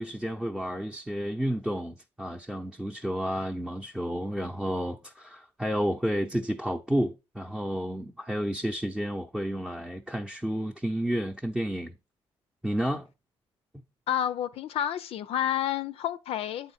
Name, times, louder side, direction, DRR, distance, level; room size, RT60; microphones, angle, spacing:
voice 1, 0.0-12.0 12.6-13.1, equal, 5° right, 0.7 m, -31 dB
voice 2, 14.1-16.7, left 10 dB, 75° left, 0.5 m, -30 dB
8.1 x 4.1 x 4.2 m
cardioid pair, 80°, 10 cm